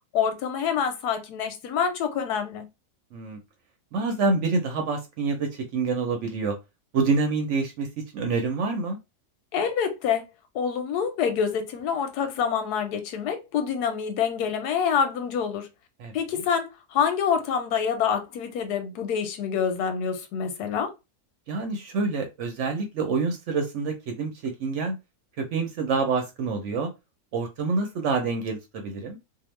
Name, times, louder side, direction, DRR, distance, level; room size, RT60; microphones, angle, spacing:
voice 1, 0.1-2.6 9.5-10.2 10.5-15.7 16.1-20.9, left 7 dB, 90° left, 1.2 m, -26 dB
voice 2, 3.9-6.6 6.9-7.9 8.1-9.0 16.0-16.1 21.5-25.0 25.4-26.9 27.3-29.2, right 4 dB, 65° right, 0.8 m, -27 dB
2.8 x 2.0 x 3.0 m
omnidirectional pair, 1.7 m